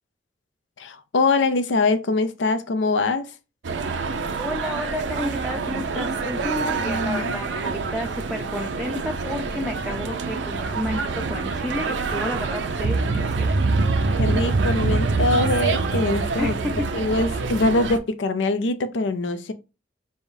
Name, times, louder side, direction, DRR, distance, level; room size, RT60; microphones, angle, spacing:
voice 1, 0.8-3.3 6.8-7.4 14.2-16.5 16.9-19.5, left 3 dB, 85° left, 0.5 m, -23 dB
sound 1, 3.6-18.0, right 3 dB, 80° right, 0.6 m, -25 dB
voice 2, 4.4-13.5 16.4-16.9, left 1 dB, ahead, 0.5 m, -31 dB
4.5 x 3.4 x 2.7 m
head